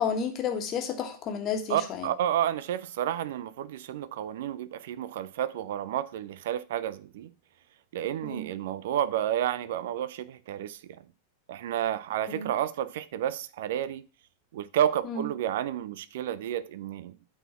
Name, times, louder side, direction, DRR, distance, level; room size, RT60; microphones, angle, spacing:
voice 1, 0.0-2.1 8.2-8.5 12.3-12.5 15.0-15.3, left 6 dB, 30° left, 1.6 m, -31 dB
voice 2, 1.7-7.3 7.9-11.1 11.5-14.0 14.5-17.1, right 11 dB, 55° right, 0.5 m, -31 dB
8.9 x 4.4 x 5.8 m
figure-of-eight pair, 90°, 0 cm